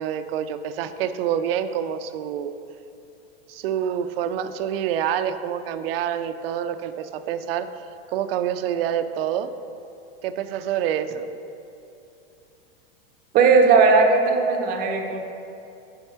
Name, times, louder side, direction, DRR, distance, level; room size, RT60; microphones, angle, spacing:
voice 1, 0.0-2.5 3.5-7.7 8.1-9.5 10.2-11.3, right 9 dB, 70° right, 10 dB, 0.5 m, -27 dB
voice 2, 13.3-15.2, right 4 dB, 30° right, 3 dB, 0.7 m, -17 dB
5.3 x 4.5 x 5.7 m, 2.8 s
supercardioid pair, 135°, 30 cm